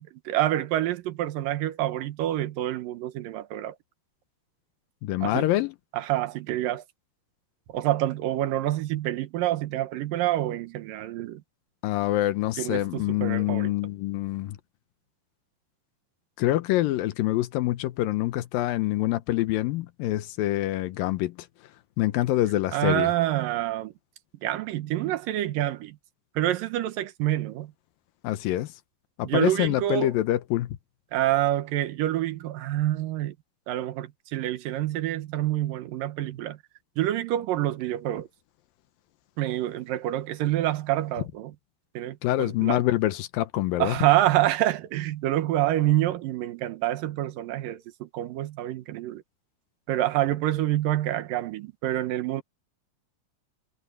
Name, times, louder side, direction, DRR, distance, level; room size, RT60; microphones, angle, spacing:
voice 1, 0.0-3.8 5.2-5.5 5.9-6.8 7.7-11.4 12.6-13.7 22.7-23.9 24.4-26.0 26.4-27.7 29.2-30.1 31.1-33.4 33.7-36.6 37.0-38.3 39.4-41.6 41.9-42.8 43.8-49.2 49.9-52.4, right 14 dB, 80° right, 2.7 m, -27 dB
voice 2, 5.0-5.7 11.8-14.6 16.4-21.3 22.0-23.1 28.2-28.7 29.2-30.7 42.2-43.9, left 15 dB, 85° left, 2.6 m, -25 dB
omnidirectional pair, 4.0 m